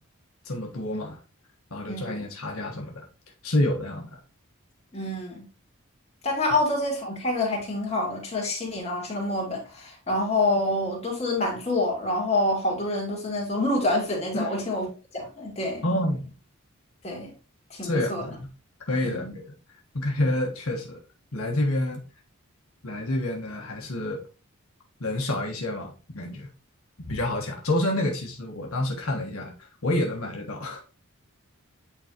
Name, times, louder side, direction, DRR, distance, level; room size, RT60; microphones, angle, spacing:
voice 1, 0.4-1.2 1.7-2.9 3.4-4.2 14.3-14.6 15.8-16.3 17.8-18.4 18.9-19.5 19.9-21.0 21.3-22.0 22.8-24.2 25.0-26.5 27.0-30.9, left 1 dB, 80° left, 1.3 m, -28 dB
voice 2, 1.9-2.2 4.9-5.5 6.2-14.9 15.1-15.8 17.0-17.3 17.7-18.2 19.0-19.3, left 2 dB, 30° left, 2.4 m, -27 dB
8.9 x 4.0 x 2.9 m
head